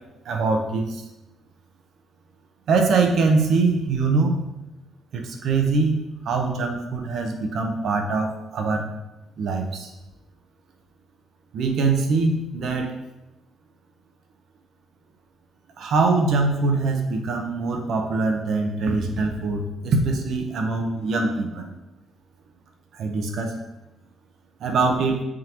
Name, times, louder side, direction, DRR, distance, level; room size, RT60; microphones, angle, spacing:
voice 1, 0.2-1.0 2.7-4.4 5.1-6.0 6.2-8.9 9.4-9.9 11.5-12.9 15.8-21.7 22.9-23.6 24.6-25.2, right 3 dB, 65° right, 3 dB, 0.8 m, -23 dB
9.0 x 3.7 x 3.0 m, 0.97 s
cardioid pair, 120°, 0 cm